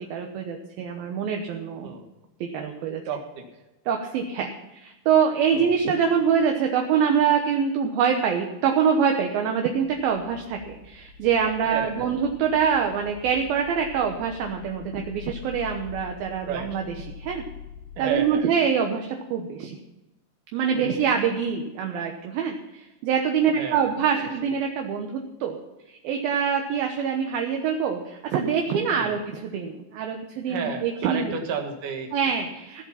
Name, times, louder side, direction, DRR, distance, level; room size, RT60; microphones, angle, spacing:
voice 1, 0.1-2.0 2.4-3.0 3.9-4.5 4.8-16.8 17.2-17.4 18.0-19.8 20.5-22.5 23.0-25.6 25.9-31.3 32.1-32.9, right 7 dB, 70° right, 3 dB, 2.5 m, -25 dB
voice 2, 3.1-3.6 5.5-5.7 11.7-12.1 16.4-16.9 18.0-18.5 20.7-21.0 23.5-24.3 28.9-29.3 30.5-32.1, right 6 dB, 55° right, 3 dB, 2.8 m, -33 dB
sound 1, 9.7-18.1, left 7 dB, 80° left, 3.7 m, -44 dB
15.5 x 7.9 x 5.7 m, 1.0 s
omnidirectional pair, 5.2 m